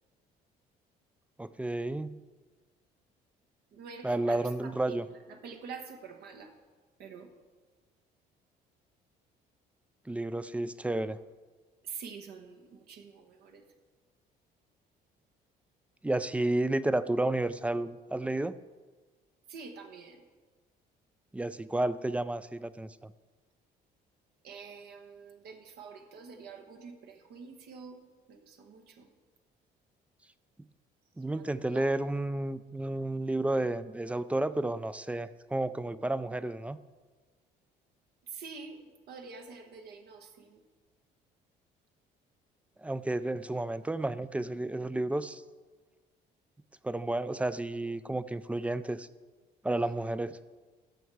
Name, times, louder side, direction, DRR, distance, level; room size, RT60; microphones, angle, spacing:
voice 1, 1.4-2.2 4.0-5.0 10.1-11.2 16.0-18.5 21.3-23.1 31.2-36.8 42.8-45.4 46.8-49.1 49.6-50.4, right 2 dB, 10° right, 15 dB, 0.3 m, -31 dB
voice 2, 3.7-6.5 7.0-7.3 11.8-13.6 19.5-20.3 24.4-29.1 31.3-31.9 38.2-38.8 39.1-40.6, right 5 dB, 75° right, 5 dB, 1.1 m, -47 dB
14.5 x 5.6 x 4.7 m, 1.3 s
cardioid pair, 110°, 17 cm